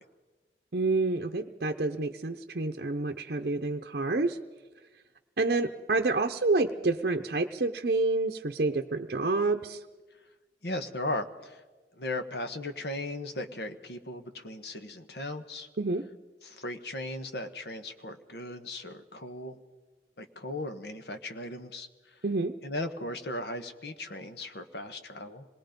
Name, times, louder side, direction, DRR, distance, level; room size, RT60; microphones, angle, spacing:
voice 1, 0.7-4.4 5.4-9.8 15.8-16.1 22.2-22.5, right 3 dB, 55° right, 3 dB, 0.7 m, -28 dB
voice 2, 10.6-11.6 12.0-15.7 16.4-19.6 20.2-22.2 22.6-25.5, left 1 dB, 70° left, 8 dB, 1.3 m, -37 dB
26.0 x 20.0 x 5.2 m, 1.3 s
head